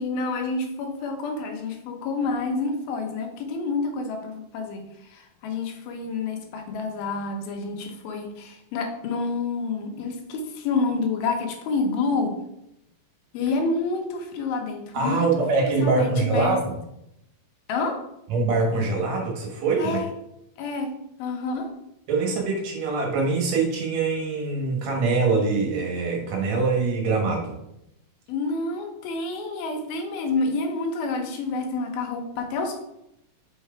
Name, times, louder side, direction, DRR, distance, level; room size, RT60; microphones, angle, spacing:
voice 1, 0.0-4.9 5.1-12.4 13.3-16.6 17.7-18.0 19.8-20.1 20.6-20.9 21.2-21.7 28.3-32.8, left 3 dB, 80° left, 3 dB, 2.8 m, -28 dB
voice 2, 14.9-16.8 18.3-20.0 22.1-27.6, right 3 dB, 60° right, 0 dB, 2.0 m, -24 dB
5.7 x 4.6 x 4.5 m, 0.82 s
omnidirectional pair, 4.3 m